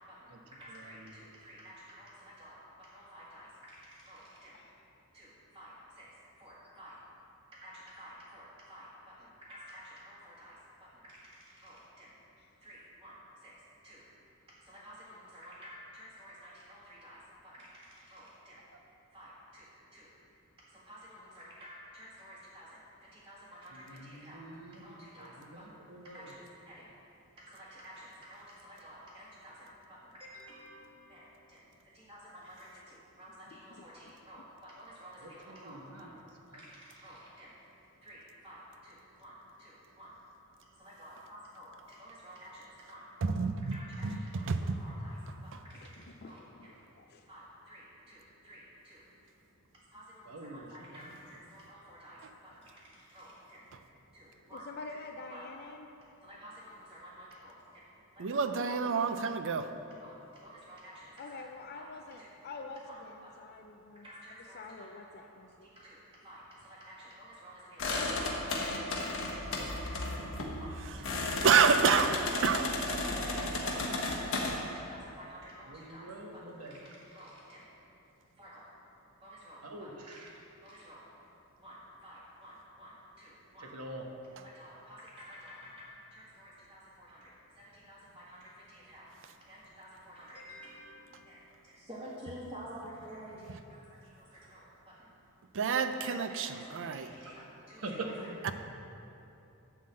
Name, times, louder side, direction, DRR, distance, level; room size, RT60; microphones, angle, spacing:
voice 1, 0.0-4.6 5.1-6.1 6.4-7.0 7.5-12.1 12.6-13.5 13.8-14.0 14.6-18.6 19.1-19.7 19.9-20.1 20.7-24.4 24.8-26.9 27.4-36.2 36.5-37.5 38.0-40.2 40.8-45.2 45.4-46.4 47.3-49.0 49.9-53.7 54.1-54.7 55.3-55.5 56.2-57.5 58.2-58.8 60.0-61.4 61.7-61.9 62.2-62.3 62.9-63.5 63.9-64.9 65.6-70.0 70.6-71.5 72.3-72.9 73.3-74.3 74.6-77.7 78.4-78.7 79.2-80.2 80.6-81.0 81.6-83.7 84.4-89.1 89.4-91.4 91.9-95.1 96.3-98.5, equal, 20° right, -10 dB, 1.7 m, -52 dB
voice 2, 4.5-4.9 12.4-12.5 32.7-32.8 33.7-34.1 45.8-47.3 54.5-55.9 58.7-59.0 61.2-64.1 64.5-65.7, left 3 dB, 45° left, 3 dB, 0.4 m, -47 dB
voice 3, 23.9-24.9 25.2-25.3 25.5-26.2 35.2-36.1 50.3-50.7 50.9-51.0 71.1-71.5 75.7-76.7 79.6-80.2 83.7-84.0 97.3-97.4 97.8-98.1, right 2 dB, 80° right, 2 dB, 1.0 m, -44 dB
voice 4, 43.2-43.8 44.0-44.2 44.5-44.8 58.2-59.7 71.4-72.6 73.8-73.9 95.5-97.1 98.4-98.5, right 6 dB, 60° right, 9 dB, 0.5 m, -28 dB
sound 1, 67.8-74.5, left 2 dB, 65° left, 1.4 m, -34 dB
11.5 x 3.8 x 7.6 m, 2.9 s
head